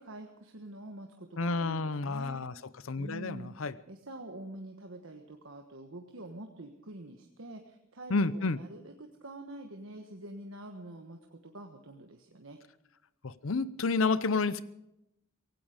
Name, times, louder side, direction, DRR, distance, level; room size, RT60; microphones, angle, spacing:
voice 1, 0.0-2.4 3.0-3.5 3.9-12.6, right 1 dB, 70° right, 4 dB, 1.3 m, -46 dB
voice 2, 1.4-2.5 2.9-3.7 8.1-8.6 13.2-14.6, left 3 dB, 75° left, 17 dB, 0.7 m, -30 dB
17.5 x 16.0 x 5.1 m, 0.86 s
head